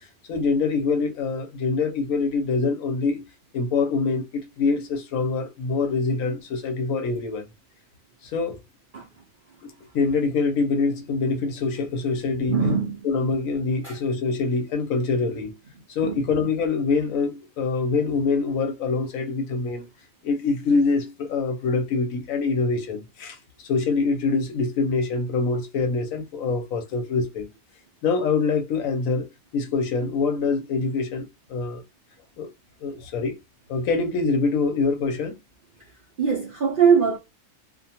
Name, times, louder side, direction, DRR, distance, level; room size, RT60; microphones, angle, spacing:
voice 1, 0.3-3.2 3.5-7.5 8.2-8.6 9.6-12.6 13.0-15.5 15.9-19.9 20.2-27.5 28.0-29.3 29.5-31.8 32.4-32.5 32.8-33.4 33.7-35.3, left 4 dB, 75° left, 1.0 m, -25 dB
voice 2, 12.5-13.0 13.8-14.0 16.0-16.3 36.2-37.2, right 6 dB, 65° right, 0.5 m, -21 dB
2.4 x 2.2 x 2.7 m
omnidirectional pair, 1.5 m